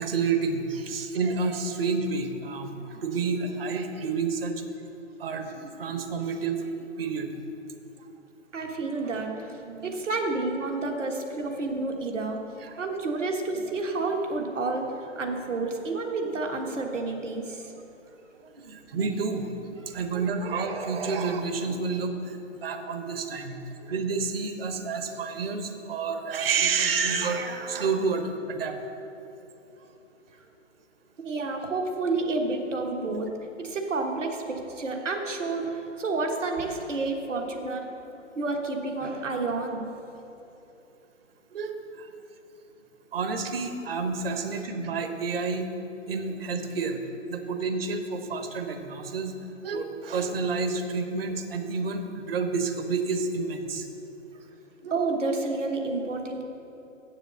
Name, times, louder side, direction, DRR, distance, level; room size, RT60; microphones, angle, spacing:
voice 1, 0.0-4.5 5.2-7.3 9.6-10.0 12.6-12.9 13.6-13.7 18.4-28.8 41.5-42.1 43.1-45.7 46.1-47.0 47.3-49.3 49.6-53.9 54.8-54.9, right 4 dB, 50° right, 6 dB, 1.1 m, -29 dB
voice 2, 8.5-12.4 12.8-17.7 19.9-20.0 23.9-24.0 31.2-33.3 33.6-37.9 38.3-39.9 54.9-56.4, right 3 dB, 70° right, 2 dB, 1.5 m, -30 dB
7.7 x 7.2 x 6.9 m, 3.0 s
figure-of-eight pair, 130°, 38 cm